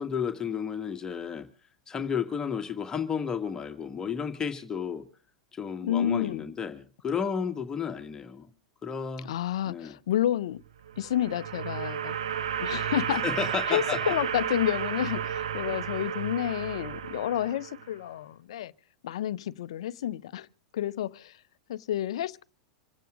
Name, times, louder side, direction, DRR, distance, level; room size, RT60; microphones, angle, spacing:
voice 1, 0.0-1.5 1.9-5.0 5.5-8.5 8.8-9.3 9.7-9.9 13.1-14.1, left 7 dB, 20° left, 1.9 m, -32 dB
voice 2, 5.8-6.4 9.2-10.6 11.0-12.2 12.6-13.2 13.7-18.7 19.0-20.5 20.7-21.3 21.7-22.4, left 11 dB, 70° left, 0.7 m, -30 dB
sound 1, 10.8-18.0, right 8 dB, 75° right, 1.7 m, -32 dB
27.0 x 9.2 x 5.1 m
hypercardioid pair, 95°, 3 cm